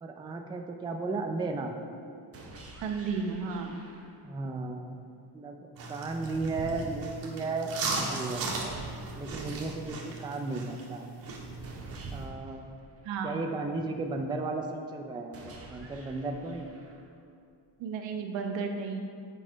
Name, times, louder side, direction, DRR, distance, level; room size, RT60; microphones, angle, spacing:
voice 1, 0.0-1.8 4.2-5.1 5.3-5.6 5.9-8.4 9.2-11.1 12.1-12.7 13.2-16.7, right 3 dB, 10° right, 3 dB, 0.3 m, -35 dB
sound 1, 2.3-4.4 8.3-10.3 11.6-13.6 15.3-17.3, right 2 dB, 30° right, 0.9 m, -50 dB
voice 2, 2.8-3.8 13.0-13.4 17.8-19.0, right 5 dB, 80° right, 4 dB, 1.0 m, -33 dB
sound 2, 5.8-12.3, right 3 dB, 50° right, 1.8 m, -37 dB
9.1 x 4.1 x 5.0 m, 2.4 s
cardioid pair, 140°, 45 cm